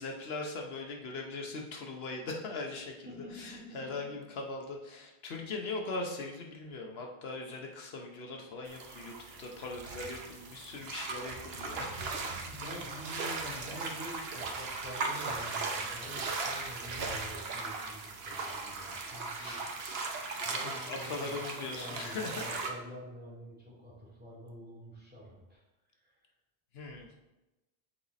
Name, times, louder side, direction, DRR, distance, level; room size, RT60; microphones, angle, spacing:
voice 1, 0.0-3.1 3.3-9.1 9.4-12.2 19.4-19.7 20.6-22.4 26.7-27.1, left 3 dB, 80° left, 1 dB, 1.1 m, -40 dB
voice 2, 3.0-3.7 12.4-19.6 20.4-25.6, left 1 dB, 10° right, -7 dB, 2.3 m, -47 dB
sound 1, 8.7-22.7, right 3 dB, 80° right, 1.0 m, -38 dB
7.7 x 4.1 x 4.1 m, 1.0 s
omnidirectional pair, 1.0 m